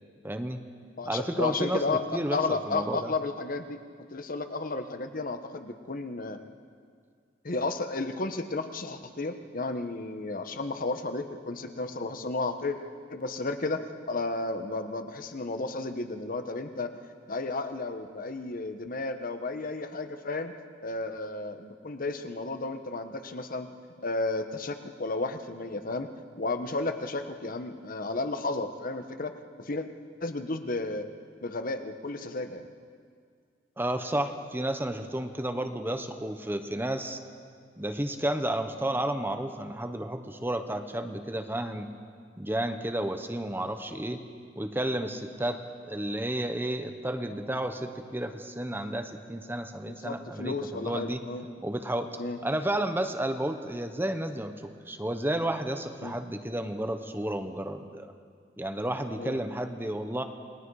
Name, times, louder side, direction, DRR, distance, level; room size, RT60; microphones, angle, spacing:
voice 1, 0.2-0.6 1.0-1.8 2.1-3.1 33.8-37.2 37.8-41.9 42.4-44.2 44.6-51.2 51.6-52.1 52.4-58.1 58.6-60.2, right 1 dB, 10° right, 7 dB, 1.1 m, -32 dB
voice 2, 1.0-2.0 2.3-3.8 4.1-6.4 7.4-12.8 13.1-16.9 17.3-20.5 20.8-23.7 24.0-26.1 26.4-29.9 30.2-31.1 31.4-32.7 49.8-51.5 52.2-52.4 56.0-56.1 59.2-59.4, left 3 dB, 50° left, 8 dB, 1.3 m, -33 dB
29.0 x 20.5 x 4.9 m, 2.1 s
head